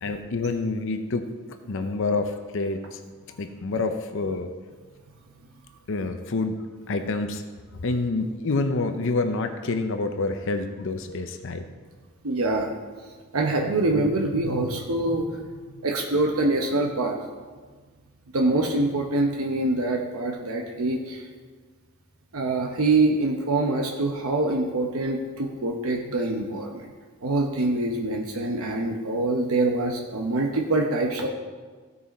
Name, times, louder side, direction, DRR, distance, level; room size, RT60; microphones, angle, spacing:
voice 1, 0.0-1.3 1.7-3.0 3.3-4.5 5.9-7.4 7.8-11.6, left 3 dB, 65° left, 7 dB, 0.7 m, -27 dB
voice 2, 12.2-12.7 13.3-15.3 15.8-17.2 18.3-21.2 22.3-26.9 27.2-31.3, right 2 dB, 80° right, 1 dB, 0.9 m, -25 dB
15.5 x 5.5 x 4.2 m, 1.4 s
head